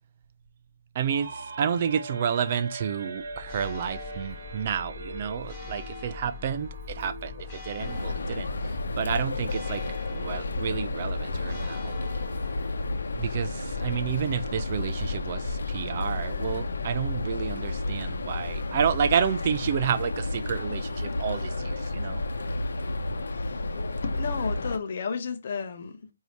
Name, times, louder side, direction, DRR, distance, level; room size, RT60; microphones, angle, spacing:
voice 1, 0.9-9.8 10.1-11.9 13.2-22.5, right 8 dB, 35° right, 0.3 m, -30 dB
sound 1, 1.1-8.7, right 3 dB, 60° right, 0.8 m, -42 dB
Church bell, 3.1-20.4, left 6 dB, 10° left, 1.5 m, -42 dB
sound 2, 7.8-24.8, left 2 dB, 80° left, 0.8 m, -31 dB
voice 2, 24.0-26.1, left 5 dB, 45° left, 0.7 m, -32 dB
4.8 x 2.7 x 2.9 m
hypercardioid pair, 170°, 0 cm